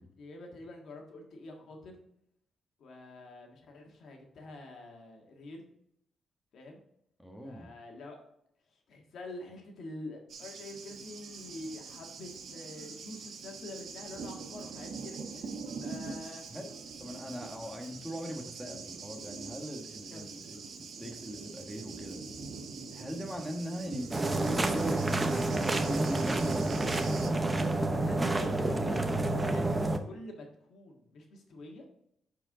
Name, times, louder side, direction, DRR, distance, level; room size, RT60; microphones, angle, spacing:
voice 1, 0.2-2.0 2.8-5.6 6.5-6.8 7.4-8.2 8.7-16.4 20.1-20.3 27.9-31.8, left 2 dB, 70° left, 2 dB, 1.7 m, -46 dB
voice 2, 7.2-7.7 16.5-16.7 17.0-22.2 22.9-26.6 28.6-28.9, equal, ahead, 1 dB, 1.3 m, -40 dB
Thunder, 10.3-27.3, right 4 dB, 70° right, 1.1 m, -43 dB
sound 1, 24.1-30.0, right 2 dB, 20° right, 0.8 m, -29 dB
9.9 x 4.7 x 3.8 m, 0.74 s
cardioid pair, 95°, 0 cm